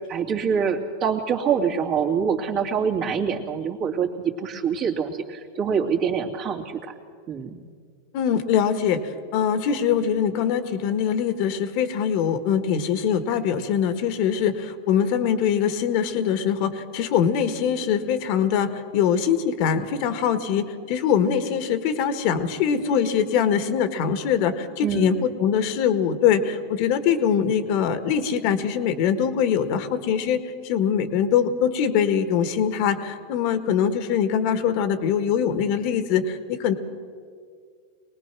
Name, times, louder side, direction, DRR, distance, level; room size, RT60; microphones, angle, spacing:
voice 1, 0.1-6.9 7.3-7.6 24.8-25.2, right 6 dB, 45° right, 1 dB, 2.6 m, -25 dB
voice 2, 8.1-36.7, left 8 dB, 60° left, 9 dB, 1.8 m, -23 dB
23.5 x 19.0 x 6.2 m, 2.1 s
hypercardioid pair, 110°, 0 cm